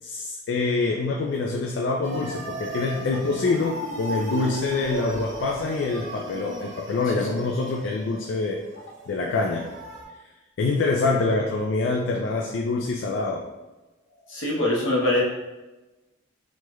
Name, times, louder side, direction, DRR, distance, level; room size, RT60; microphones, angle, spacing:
voice 1, 0.0-8.6 9.1-9.7 10.6-13.4, left 3 dB, 70° left, 0 dB, 0.3 m, -25 dB
sound 1, 2.0-10.1, right 1 dB, 70° right, 0.5 m, -36 dB
voice 2, 14.3-15.2, left 1 dB, 85° left, -3 dB, 0.9 m, -23 dB
3.2 x 2.3 x 2.9 m, 1.1 s
head